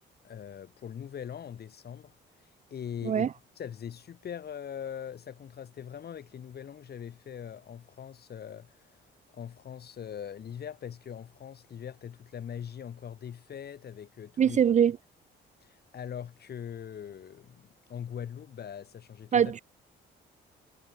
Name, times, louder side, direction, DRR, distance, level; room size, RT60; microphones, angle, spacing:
voice 1, 0.2-2.1 2.4-3.3 3.6-9.0 9.3-14.6 15.6-19.5, left 8 dB, 55° left, 2.2 m, -41 dB
voice 2, 14.4-15.0 19.3-19.6, right 8 dB, 35° right, 0.4 m, -23 dB
cardioid pair, 90°, 20 cm